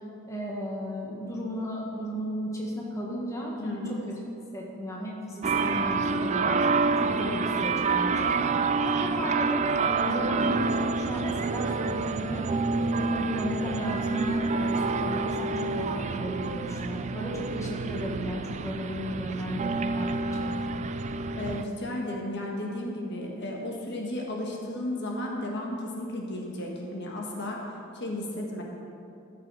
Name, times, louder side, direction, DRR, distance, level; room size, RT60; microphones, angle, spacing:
voice 1, 0.3-3.9 4.5-6.6 7.0-12.5 12.9-20.8, equal, 15° left, -3 dB, 1.4 m, -35 dB
voice 2, 3.6-4.0 7.2-7.4 21.3-27.6 27.9-28.6, left 1 dB, 55° left, -1 dB, 1.4 m, -34 dB
sound 1, 5.4-21.6, right 4 dB, 35° right, 0.3 m, -28 dB
13.5 x 6.8 x 4.8 m, 2.7 s
head